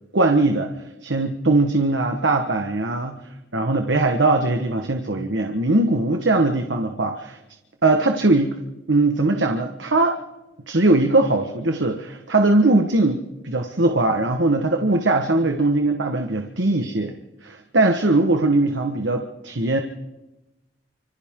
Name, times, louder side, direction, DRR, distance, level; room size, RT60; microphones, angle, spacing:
voice 1, 0.1-0.7 1.0-3.2 3.5-7.4 7.8-8.5 8.9-10.2 10.7-17.1 17.4-19.8, right 2 dB, 90° right, 4 dB, 1.5 m, -20 dB
29.5 x 26.0 x 3.8 m, 0.98 s
head